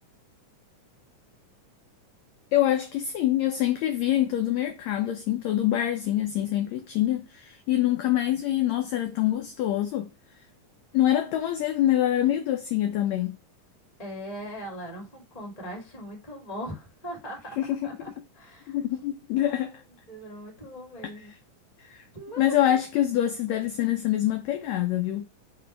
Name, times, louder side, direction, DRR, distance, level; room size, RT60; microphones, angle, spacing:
voice 1, 2.5-10.1 10.9-13.3 17.6-17.7 18.7-19.7 21.8-22.0 22.4-25.2, left 12 dB, 75° left, 1.7 m, -25 dB
voice 2, 14.0-18.8 19.4-19.7 20.0-21.3 22.1-22.8, equal, 15° left, 1.8 m, -40 dB
7.8 x 3.2 x 4.3 m
omnidirectional pair, 3.8 m